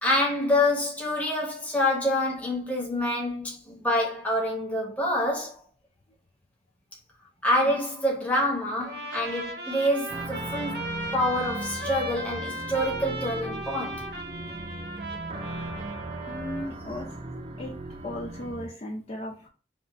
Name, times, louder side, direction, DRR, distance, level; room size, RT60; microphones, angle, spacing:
voice 1, 0.0-5.6 7.4-14.0, left 1 dB, 10° left, 1.0 m, -27 dB
Trumpet, 8.8-16.7, right 1 dB, 70° right, 1.0 m, -36 dB
sound 1, 10.1-18.7, right 1 dB, 30° right, 0.5 m, -38 dB
voice 2, 16.3-17.1 17.6-17.7 18.0-19.5, left 1 dB, 35° left, 0.5 m, -36 dB
3.5 x 2.4 x 4.0 m
head